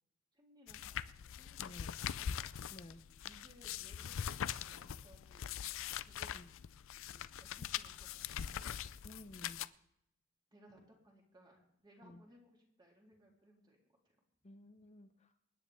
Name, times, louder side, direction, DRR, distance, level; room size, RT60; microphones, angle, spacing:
voice 1, 0.3-2.5 3.2-6.5 7.1-9.2 10.5-13.8, equal, 20° right, -2 dB, 3.3 m, -64 dB
sound 1, 0.7-9.7, left 9 dB, 65° left, 0.4 m, -42 dB
voice 2, 1.6-2.0 2.7-3.0 6.3-6.5 9.0-9.6 12.0-12.2 14.4-15.3, left 1 dB, 30° left, 6 dB, 0.7 m, -54 dB
27.0 x 9.8 x 3.5 m, 0.77 s
head